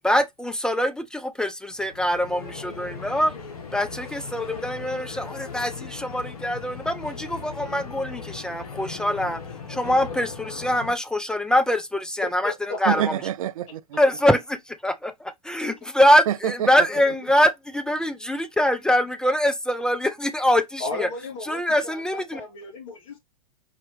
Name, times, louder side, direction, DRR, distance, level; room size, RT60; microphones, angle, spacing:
voice 1, 0.0-3.3 3.7-9.4 9.7-12.5 12.8-13.1 14.0-14.6 14.8-21.1 21.5-22.4, equal, 5° left, 0.4 m, -23 dB
sound 1, 1.7-10.9, left 5 dB, 85° left, 1.3 m, -38 dB
voice 2, 12.2-12.8 15.6-15.9 17.1-17.2 20.8-23.2, left 3 dB, 55° left, 2.3 m, -35 dB
voice 3, 12.9-14.0 16.3-16.9, right 11 dB, 65° right, 0.5 m, -27 dB
4.8 x 2.9 x 3.1 m
hypercardioid pair, 115°, 19 cm